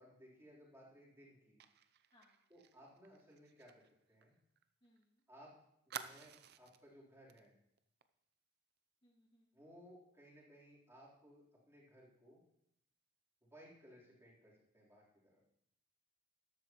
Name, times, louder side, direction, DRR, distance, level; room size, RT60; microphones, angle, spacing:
voice 1, 0.0-1.6 2.5-3.8 4.1-4.3 5.3-5.5 5.9-7.5 9.5-12.4 13.4-15.4, equal, 15° right, -6 dB, 3.7 m, -61 dB
Fire, 1.6-5.0 5.3-5.4 5.9-6.9 7.3-7.5 7.8-8.0, right 8 dB, 55° right, 0.6 m, -52 dB
voice 2, 2.1-2.5 4.8-5.2 9.0-9.6, left 1 dB, 30° left, -3 dB, 2.2 m, -71 dB
13.5 x 12.0 x 3.1 m, 0.76 s
head